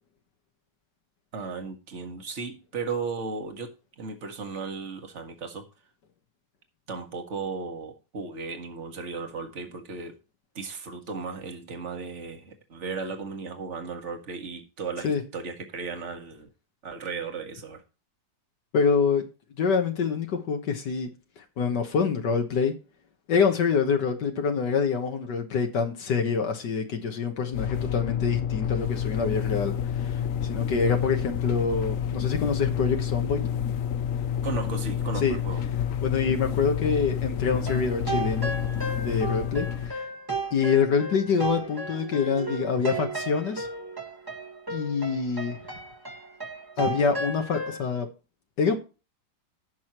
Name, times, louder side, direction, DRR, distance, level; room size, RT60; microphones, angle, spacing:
voice 1, 1.3-5.7 6.9-10.2 10.6-16.5 16.8-17.8 30.9-31.1 34.4-35.6, right 4 dB, 45° right, 2.0 m, -35 dB
voice 2, 18.7-19.3 19.6-22.8 23.3-33.4 35.2-35.4 36.0-38.5 39.0-40.1 40.5-43.7 44.7-45.6 46.8-48.1 48.6-48.8, left 5 dB, 80° left, 1.8 m, -26 dB
sound 1, 27.5-39.9, left 8 dB, 60° left, 0.9 m, -29 dB
sound 2, 37.6-47.8, right 3 dB, 15° right, 1.4 m, -34 dB
16.5 x 6.3 x 3.0 m
omnidirectional pair, 1.8 m